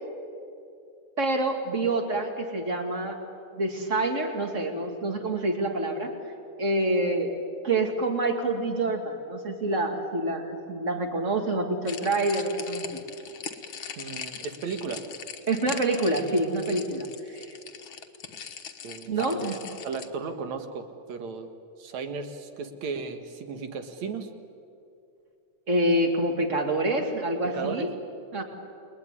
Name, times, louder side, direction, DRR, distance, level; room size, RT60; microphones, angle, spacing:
voice 1, 1.2-3.2 3.5-6.1 6.6-7.3 7.6-13.0 15.5-17.1 17.3-17.6 19.1-19.6 25.7-27.9 28.3-28.4, right 2 dB, 25° right, 4 dB, 2.6 m, -27 dB
sound 1, 11.8-20.1, left 7 dB, 50° left, 1.8 m, -40 dB
voice 2, 14.0-15.0 18.8-19.6 19.8-21.5 21.8-24.3 27.4-27.9, right 5 dB, 70° right, 7 dB, 2.9 m, -35 dB
29.0 x 21.0 x 9.8 m, 2.5 s
omnidirectional pair, 3.4 m